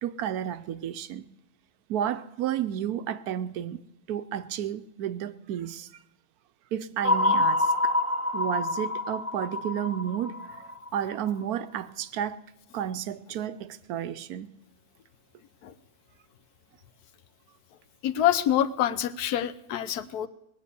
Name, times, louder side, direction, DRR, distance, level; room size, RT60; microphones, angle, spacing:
voice 1, 0.0-1.2 1.9-3.8 4.1-5.9 6.7-7.9 8.3-12.4 12.7-14.5, right 10 dB, 80° right, 1.2 m, -32 dB
sound 1, 7.0-11.3, left 2 dB, 15° left, 0.6 m, -27 dB
voice 2, 18.0-20.3, left 11 dB, 85° left, 1.3 m, -26 dB
20.0 x 8.6 x 6.9 m
omnidirectional pair, 1.6 m